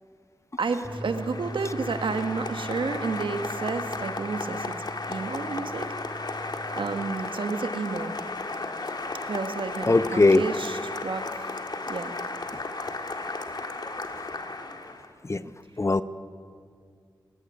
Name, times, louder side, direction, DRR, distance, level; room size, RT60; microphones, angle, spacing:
Applause, 0.6-15.1, left 3 dB, 55° left, 1.8 m, -35 dB
voice 1, 0.6-4.7 5.1-5.9 6.8-8.2 9.3-11.6 11.9-12.1, right 4 dB, 80° right, 8 dB, 1.5 m, -31 dB
sound 1, 0.8-7.1, right 2 dB, 5° right, 3.2 m, -42 dB
voice 2, 9.9-10.4 15.3-15.4 15.8-16.0, left 2 dB, 35° left, 14 dB, 0.8 m, -19 dB
19.0 x 16.0 x 9.8 m, 2.2 s
cardioid pair, 50°, 8 cm